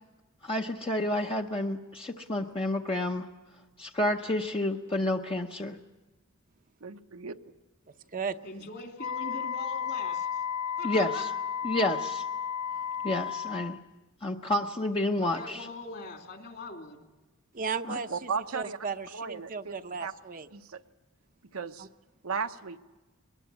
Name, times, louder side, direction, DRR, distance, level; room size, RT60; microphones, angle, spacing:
voice 1, 0.4-3.3 3.8-5.8 10.8-11.3 11.6-12.2 13.0-13.8 14.2-15.7 17.9-18.0, left 1 dB, 25° left, 2 dB, 0.8 m, -30 dB
voice 2, 6.8-7.3 18.1-18.8 19.1-19.7 20.0-20.1 20.5-20.8 21.5-21.9 22.2-22.8, right 5 dB, 75° right, 8 dB, 0.9 m, -35 dB
voice 3, 8.4-10.4 10.8-11.3 15.1-17.1, left 3 dB, 50° left, 5 dB, 2.8 m, -42 dB
Wind instrument woodwind instrument, 9.0-13.8, left 8 dB, 80° left, 0.8 m, -33 dB
voice 4, 17.5-20.5 21.8-21.9, right 5 dB, 40° right, 8 dB, 0.7 m, -35 dB
22.0 x 20.0 x 8.3 m, 1.2 s
head